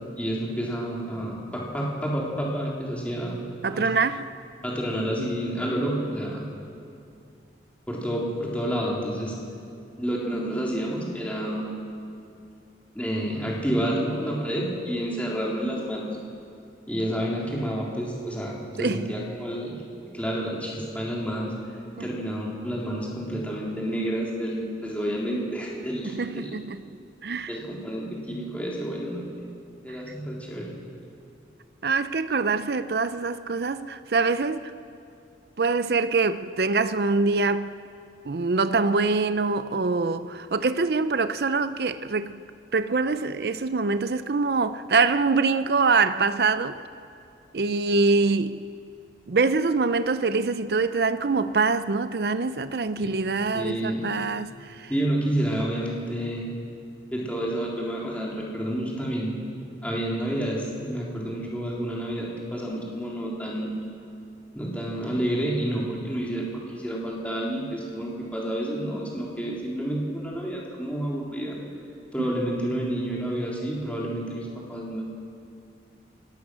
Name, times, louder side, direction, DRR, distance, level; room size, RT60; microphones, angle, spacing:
voice 1, 0.0-3.4 3.7-3.9 4.6-6.4 7.9-9.3 10.0-11.6 13.0-16.1 16.9-19.7 20.0-26.6 27.5-29.2 29.8-30.7 53.0-54.0 54.9-56.5 57.1-59.4 59.8-63.7 64.5-66.4 66.7-71.6 72.1-75.0, right 1 dB, 10° left, 3.6 m, -29 dB
voice 2, 3.6-4.3 18.8-19.1 22.0-22.1 26.0-26.8 27.2-27.6 31.8-34.7 35.6-37.7 38.2-42.4 42.7-46.8 47.5-48.6 49.3-54.9, right 4 dB, 60° right, 0.6 m, -24 dB
29.0 x 17.5 x 6.3 m
head